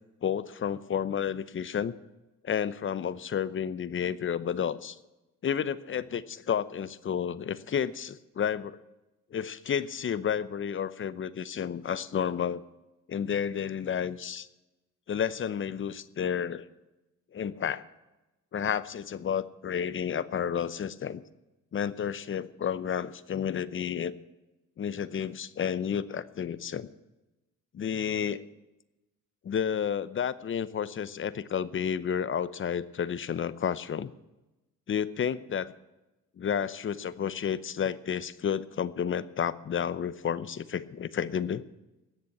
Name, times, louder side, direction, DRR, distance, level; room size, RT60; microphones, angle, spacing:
voice 1, 0.2-1.9 2.4-5.0 5.4-8.8 9.3-12.6 13.1-14.5 15.1-16.6 17.3-17.8 18.5-21.2 21.7-24.1 24.8-26.9 27.7-28.4 29.4-34.1 34.9-35.7 36.4-41.6, left 8 dB, 40° left, 17 dB, 0.8 m, -31 dB
17.5 x 6.9 x 8.6 m, 1.0 s
cardioid pair, 90°, 30 cm